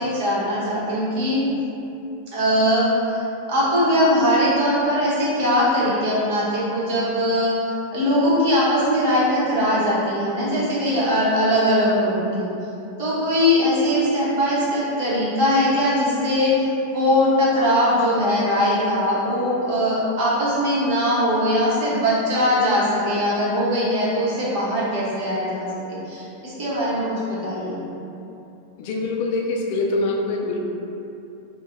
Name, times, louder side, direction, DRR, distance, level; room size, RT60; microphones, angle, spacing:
voice 1, 0.0-1.4 2.3-3.2 3.5-7.6 7.9-12.5 13.0-27.8, equal, 45° right, -8 dB, 0.9 m, -21 dB
voice 2, 28.8-30.6, left 2 dB, 50° left, 0 dB, 0.4 m, -24 dB
2.6 x 2.1 x 3.6 m, 2.8 s
figure-of-eight pair, 90°, 0 cm